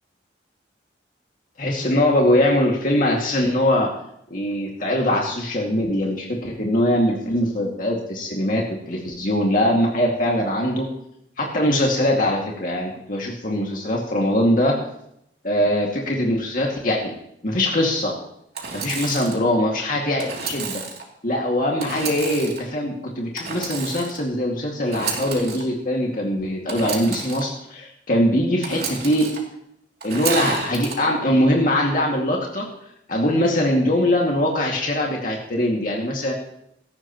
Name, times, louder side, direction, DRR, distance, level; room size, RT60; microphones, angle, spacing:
voice 1, 1.6-3.9 4.3-10.9 11.4-14.8 15.4-17.1 17.4-18.2 18.7-20.8 21.2-29.3 30.0-32.7 33.1-36.3, left 1 dB, 50° left, -1 dB, 2.2 m, -22 dB
Engine / Sawing, 18.5-19.4 20.2-21.0 21.8-22.6 23.4-24.2 24.8-25.6 26.7-27.4 28.6-29.4 30.0-31.0, right 5 dB, 60° right, 2.9 m, -30 dB
17.5 x 14.5 x 3.0 m, 0.76 s
head